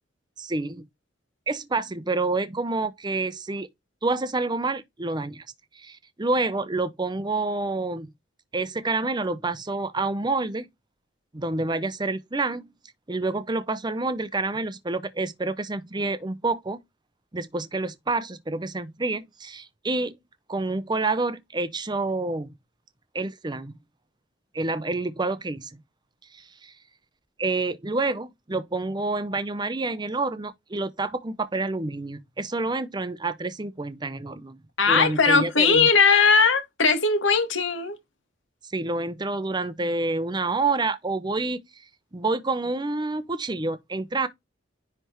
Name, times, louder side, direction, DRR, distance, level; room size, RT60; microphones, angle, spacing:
voice 1, 0.4-0.8 1.5-3.7 4.0-5.4 5.8-8.1 8.5-10.7 11.3-12.7 13.1-16.8 17.3-20.2 20.5-22.5 23.1-23.8 24.5-25.8 26.3-26.7 27.4-34.6 34.9-35.9 38.7-41.6 42.1-44.3, right 3 dB, 25° right, 0.7 m, -28 dB
voice 2, 34.8-38.0, left 5 dB, 85° left, 2.0 m, -19 dB
10.0 x 3.4 x 3.1 m
head